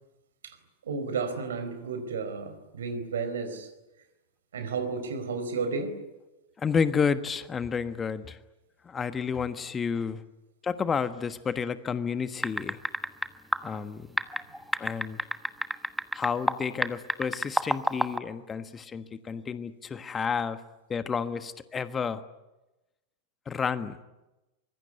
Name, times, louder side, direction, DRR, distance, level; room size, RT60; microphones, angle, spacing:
voice 1, 0.8-3.7 4.5-6.0, right 4 dB, 65° right, 4.3 m, -32 dB
voice 2, 6.6-8.4 8.8-10.2 10.6-12.8 13.6-14.1 14.8-15.2 16.1-20.6 20.9-22.2 23.5-24.0, left 6 dB, 20° left, 1.3 m, -30 dB
sound 1, 12.4-13.3 13.5-13.6 14.2-16.6 16.8-18.2, equal, ahead, 1.2 m, -27 dB
25.0 x 23.0 x 9.6 m
figure-of-eight pair, 90°, 0 cm